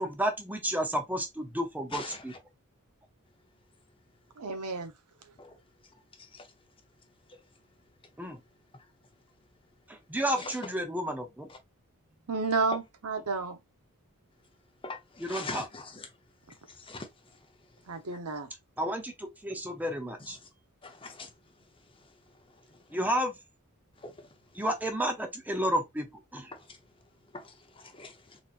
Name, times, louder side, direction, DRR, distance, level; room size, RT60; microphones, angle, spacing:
voice 1, 0.0-2.3 8.2-8.4 9.9-11.5 15.2-15.7 18.8-20.4 22.9-23.3 24.5-26.1 26.3-26.5, equal, 10° right, 0.7 m, -31 dB
voice 2, 4.4-4.9 12.3-13.6 17.9-18.5, right 3 dB, 80° right, 0.9 m, -31 dB
voice 3, 14.8-15.8 16.9-17.1 20.8-21.3 24.0-24.1 27.3-27.4 27.8-28.1, left 3 dB, 25° left, 0.8 m, -40 dB
4.1 x 3.0 x 2.5 m
head